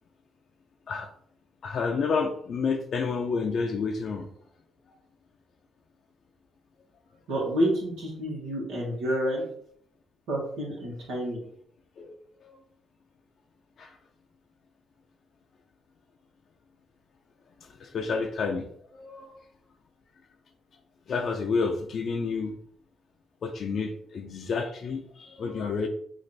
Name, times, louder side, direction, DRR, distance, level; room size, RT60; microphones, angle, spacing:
voice 1, 1.6-4.3 12.0-12.1 12.4-12.6 13.8-14.0 17.6-18.7 18.9-19.3 21.1-22.5 23.4-25.9, left 5 dB, 55° left, 2 dB, 0.5 m, -30 dB
voice 2, 7.3-9.4 10.3-11.4, equal, 90° right, -3 dB, 1.4 m, -29 dB
3.1 x 2.6 x 4.1 m, 0.63 s
cardioid pair, 90°, 0 cm